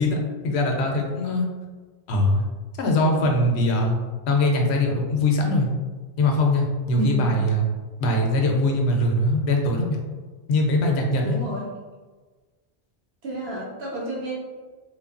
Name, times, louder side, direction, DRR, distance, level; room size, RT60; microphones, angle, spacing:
voice 1, 0.0-1.5 2.1-2.4 2.8-4.0 4.3-5.7 6.2-7.6 8.0-10.0 10.5-11.3, left 1 dB, 85° left, 1 dB, 0.8 m, -21 dB
voice 2, 6.9-7.4 11.2-11.8 13.2-14.4, right 1 dB, 75° right, -4 dB, 0.9 m, -30 dB
3.0 x 2.2 x 2.4 m, 1.3 s
omnidirectional pair, 1.1 m